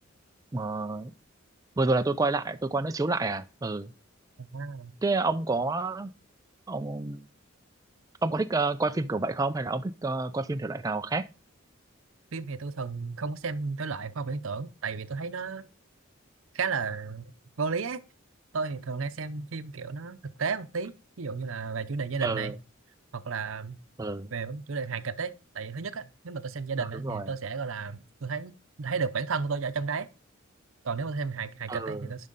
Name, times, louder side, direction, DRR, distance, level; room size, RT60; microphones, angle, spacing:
voice 1, 0.5-1.1 1.8-3.9 5.0-6.1 6.7-7.2 8.2-11.3 22.2-22.5 24.0-24.3 26.8-27.3 31.7-32.0, right 3 dB, 15° right, 0.4 m, -29 dB
voice 2, 4.4-4.9 12.3-15.7 16.5-17.3 17.6-18.0 18.5-22.5 23.1-23.8 24.3-30.1 30.8-32.3, right 5 dB, 75° right, 0.7 m, -33 dB
11.0 x 5.4 x 3.9 m
head